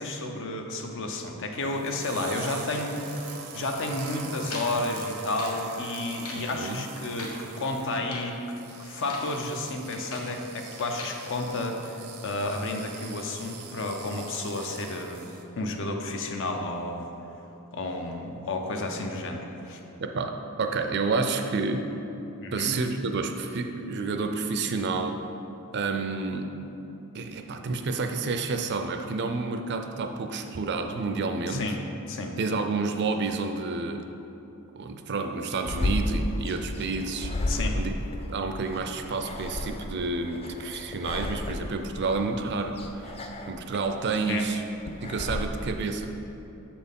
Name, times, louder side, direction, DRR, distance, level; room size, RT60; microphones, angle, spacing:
voice 1, 0.0-17.1 17.7-19.8 22.4-22.8 31.5-31.8 32.1-32.3 37.5-37.8 44.3-44.5, left 2 dB, 55° left, 3 dB, 0.7 m, -31 dB
sound 1, 1.6-15.4, right 5 dB, 90° right, 0.7 m, -43 dB
sound 2, 4.4-5.6 6.0-6.5 6.9-7.4 7.9-8.3 8.9-9.3 9.7-10.3 10.8-11.2, left 2 dB, 80° left, 1.1 m, -41 dB
voice 2, 20.0-21.9 22.5-25.2 25.7-26.5 27.1-31.7 32.4-34.1 34.8-37.9 38.3-43.2 43.5-44.6 44.9-46.1, right 3 dB, 50° right, 6 dB, 0.4 m, -29 dB
sound 3, 35.7-45.5, left 1 dB, 25° left, 0.3 m, -33 dB
7.3 x 4.4 x 5.3 m, 3.0 s
head